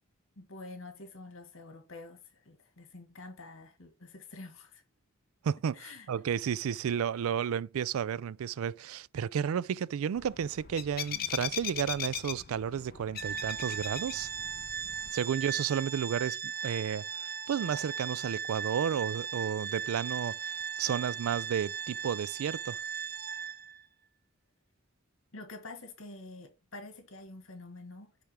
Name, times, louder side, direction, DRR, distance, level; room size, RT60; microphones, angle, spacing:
voice 1, 0.3-4.8 5.7-6.1 25.3-28.2, left 2 dB, 65° left, 1.7 m, -47 dB
voice 2, 5.4-14.3 15.1-20.4 20.8-22.8, right 8 dB, 75° right, 0.3 m, -32 dB
sound 1, 10.2-15.1, left 9 dB, 45° left, 0.6 m, -40 dB
Organ, 13.2-23.8, right 7 dB, 45° right, 0.7 m, -38 dB
10.0 x 3.5 x 4.9 m
head